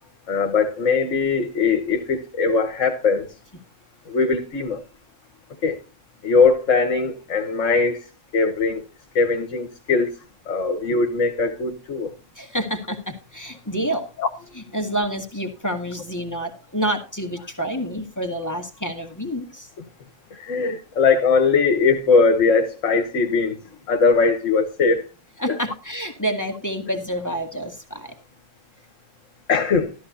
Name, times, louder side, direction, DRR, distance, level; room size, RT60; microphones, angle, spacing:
voice 1, 0.3-3.3 4.1-4.8 5.6-5.8 6.2-8.0 8.3-8.8 9.1-10.1 10.5-12.1 14.2-14.3 20.3-23.6 23.9-25.1 25.5-25.6 29.5-29.9, left 4 dB, 65° left, 1.5 m, -20 dB
voice 2, 12.4-14.1 14.6-19.7 25.4-28.2, equal, 15° left, 2.0 m, -28 dB
14.0 x 13.5 x 2.8 m
omnidirectional pair, 1.4 m